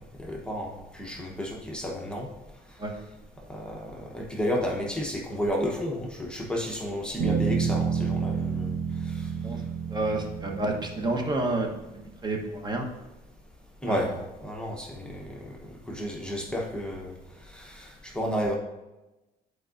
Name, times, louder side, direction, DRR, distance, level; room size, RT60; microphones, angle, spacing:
voice 1, 0.2-2.3 3.5-8.7 9.2-9.3 13.8-14.1 14.4-17.2 17.5-18.6, equal, 5° left, -1 dB, 1.0 m, -32 dB
Bass guitar, 7.2-11.6, right 6 dB, 75° right, 1.1 m, -29 dB
voice 2, 9.9-11.7 11.9-12.9 13.9-14.2, right 2 dB, 25° right, 1 dB, 1.1 m, -29 dB
10.5 x 4.7 x 2.6 m, 1.0 s
cardioid pair, 110°, 17 cm